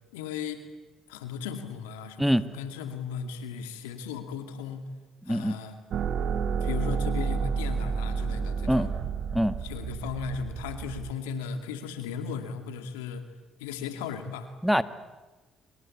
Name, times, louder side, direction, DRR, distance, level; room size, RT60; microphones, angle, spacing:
voice 1, 0.1-0.7 1.1-4.9 5.3-5.8 6.6-8.9 9.6-13.3 13.6-14.5, left 6 dB, 90° left, 8 dB, 2.4 m, -36 dB
voice 2, 5.3-5.6 8.7-8.9 9.3-9.6 14.6-14.8, equal, ahead, 12 dB, 1.7 m, -23 dB
sound 1, 5.9-11.1, right 6 dB, 60° right, 1.5 m, -30 dB
26.0 x 25.0 x 8.5 m, 1.2 s
hypercardioid pair, 55°, 0 cm